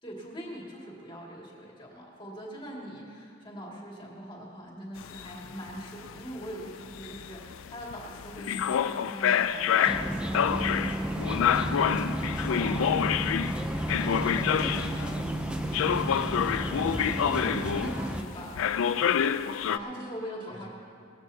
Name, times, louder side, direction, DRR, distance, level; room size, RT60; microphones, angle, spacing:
voice 1, 0.0-11.9 12.5-13.0 17.0-18.7 19.7-20.7, equal, 25° left, -3 dB, 2.3 m, -42 dB
sound 1, 5.0-15.2 15.7-18.2 18.6-19.8, left 8 dB, 70° left, 0.4 m, -28 dB
sound 2, 9.9-18.2, right 1 dB, 5° right, 0.5 m, -32 dB
voice 2, 14.8-16.2 19.7-20.1 20.5-20.7, right 1 dB, 25° right, -3 dB, 1.9 m, -53 dB
20.5 x 14.5 x 2.8 m, 2.5 s
head